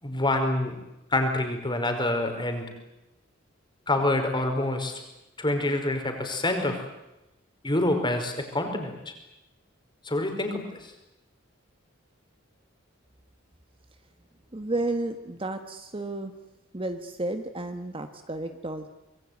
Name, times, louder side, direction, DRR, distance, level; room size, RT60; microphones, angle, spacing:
voice 1, 0.0-0.8 1.1-2.7 3.9-5.0 5.4-6.8 7.6-9.1 10.0-10.9, left 1 dB, 25° left, 5 dB, 5.0 m, -27 dB
voice 2, 14.5-16.3 16.7-18.9, right 2 dB, 25° right, 7 dB, 1.4 m, -32 dB
25.5 x 21.5 x 9.5 m, 0.94 s
head